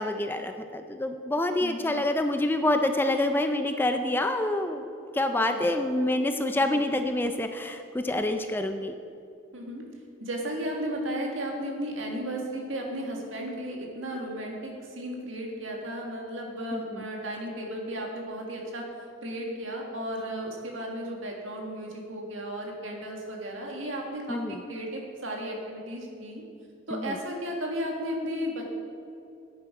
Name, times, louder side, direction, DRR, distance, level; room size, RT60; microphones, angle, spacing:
voice 1, 0.0-4.9 5.1-8.9 16.7-17.1 24.3-24.6 26.9-27.2, left 1 dB, 10° left, 7 dB, 0.4 m, -27 dB
voice 2, 1.6-2.0 5.4-5.8 6.6-6.8 9.5-9.8 10.2-18.9 19.2-26.4 26.9-28.7, equal, 75° right, 0 dB, 1.8 m, -34 dB
10.5 x 8.7 x 4.8 m, 2.5 s
head